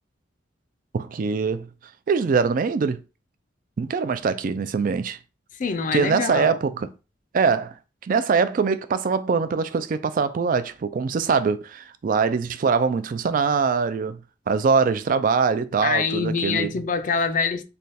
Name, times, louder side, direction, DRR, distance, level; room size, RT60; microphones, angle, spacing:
voice 1, 0.9-1.7 2.1-3.0 3.8-5.2 5.9-6.9 7.3-7.7 8.0-14.2 14.5-16.7, right 5 dB, 45° right, 0.3 m, -23 dB
voice 2, 5.6-6.6 15.8-17.6, left 5 dB, 40° left, 0.4 m, -25 dB
3.2 x 2.3 x 4.1 m
head